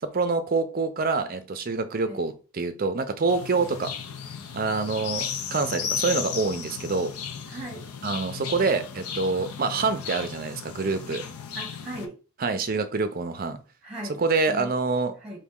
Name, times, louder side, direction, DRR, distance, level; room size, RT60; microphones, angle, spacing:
voice 1, 0.0-3.9 4.5-7.1 8.0-11.2 12.4-13.6 14.2-15.1, right 4 dB, 40° right, 0.5 m, -26 dB
sound 1, 3.3-12.1, left 7 dB, 80° left, 0.5 m, -35 dB
voice 2, 7.5-7.8 11.5-12.2 13.8-14.2 14.5-14.8 15.2-15.4, right 1 dB, 5° right, 1.1 m, -38 dB
4.0 x 2.6 x 3.6 m
head